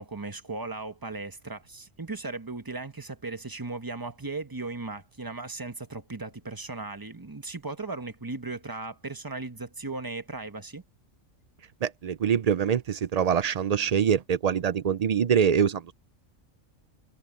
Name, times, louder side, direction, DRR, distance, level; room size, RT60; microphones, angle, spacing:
voice 1, 0.0-10.8, right 3 dB, 15° right, 1.0 m, -37 dB
voice 2, 11.8-15.9, right 7 dB, 80° right, 0.3 m, -24 dB
omnidirectional pair, 1.4 m